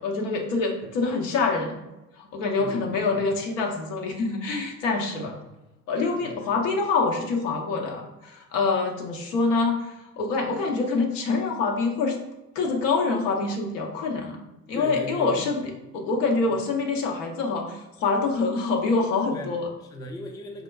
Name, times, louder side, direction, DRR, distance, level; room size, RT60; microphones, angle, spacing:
voice 1, 0.0-1.8 2.2-5.4 5.9-12.2 12.5-14.4 14.7-19.7, left 4 dB, 70° left, 2 dB, 0.7 m, -26 dB
voice 2, 2.6-3.2 5.2-5.5 6.2-6.5 14.7-15.5 16.5-16.6 19.3-20.6, left 1 dB, 10° left, 2 dB, 0.4 m, -39 dB
4.4 x 2.1 x 2.2 m, 0.96 s
hypercardioid pair, 55°, 39 cm